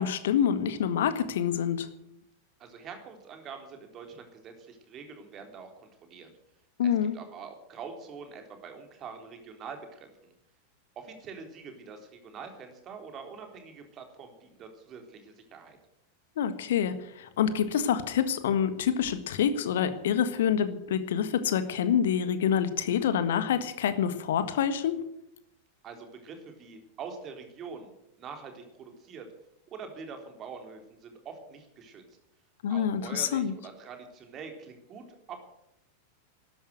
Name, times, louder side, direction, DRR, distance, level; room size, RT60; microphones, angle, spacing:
voice 1, 0.0-1.9 6.8-7.1 16.4-25.0 32.6-33.5, left 8 dB, 60° left, 12 dB, 1.6 m, -27 dB
voice 2, 2.6-6.3 6.8-10.3 11.0-15.8 25.8-29.3 29.7-32.0 32.7-35.4, right 5 dB, 30° right, 5 dB, 3.8 m, -45 dB
13.0 x 11.0 x 9.3 m, 0.78 s
figure-of-eight pair, 90°, 0 cm